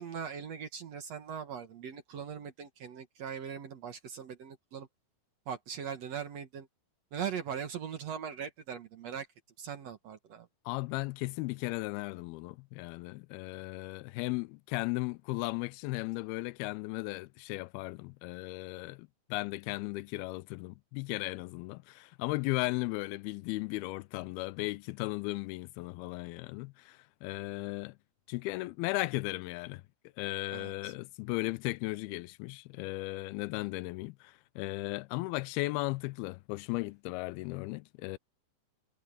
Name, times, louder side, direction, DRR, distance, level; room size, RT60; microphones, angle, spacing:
voice 1, 0.0-4.9 5.5-6.7 7.1-9.3 9.6-10.5 30.5-30.9, right 7 dB, 55° right, 2.1 m, -40 dB
voice 2, 10.7-28.0 28.3-29.8 30.2-38.2, left 22 dB, 90° left, 2.5 m, -36 dB
omnidirectional pair, 4.3 m